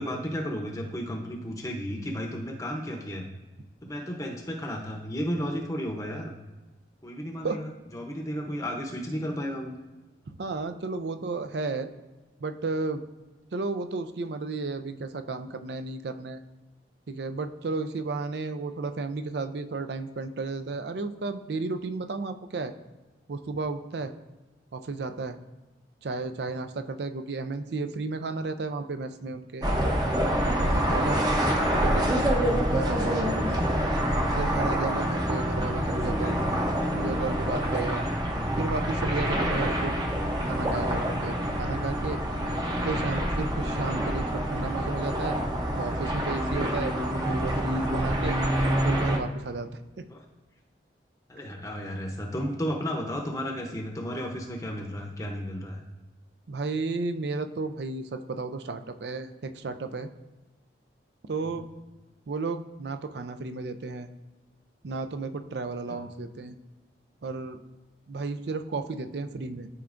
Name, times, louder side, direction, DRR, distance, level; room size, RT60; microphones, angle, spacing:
voice 1, 0.0-3.2 3.8-6.4 7.0-9.7 35.7-36.4 50.1-50.2 51.3-55.8 61.5-61.6 65.9-66.0, equal, 20° left, 0 dB, 0.7 m, -33 dB
voice 2, 10.3-11.9 12.4-13.0 13.5-16.4 17.1-22.7 23.3-24.1 24.7-25.4 26.0-29.7 30.4-31.2 31.6-32.3 32.7-33.6 34.4-36.4 36.9-38.0 38.6-40.0 40.5-42.2 42.8-45.4 45.8-48.4 48.8-49.7 50.0-50.1 56.5-60.1 61.3-61.7 62.3-64.1 64.8-66.6 67.2-67.6 68.1-69.7, right 3 dB, 70° right, 9 dB, 0.5 m, -33 dB
sound 1, 29.6-49.2, equal, 25° right, 0.7 m, -27 dB
12.5 x 4.4 x 2.5 m, 1.1 s
head